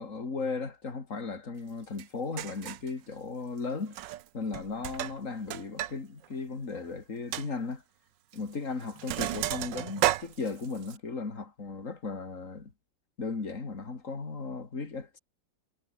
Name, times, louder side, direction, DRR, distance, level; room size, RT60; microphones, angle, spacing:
voice 1, 0.0-4.0 4.3-7.8 8.3-12.7 13.2-15.2, left 4 dB, 45° left, 3.1 m, -36 dB
Sink (filling or washing), 2.0-2.1 2.4-2.9 3.9-4.3 4.5-5.9 6.2-6.3 6.8-6.9 7.3-7.5 8.3-8.5 8.8-11.0, right 13 dB, 80° right, 1.5 m, -32 dB
omnidirectional pair, 2.0 m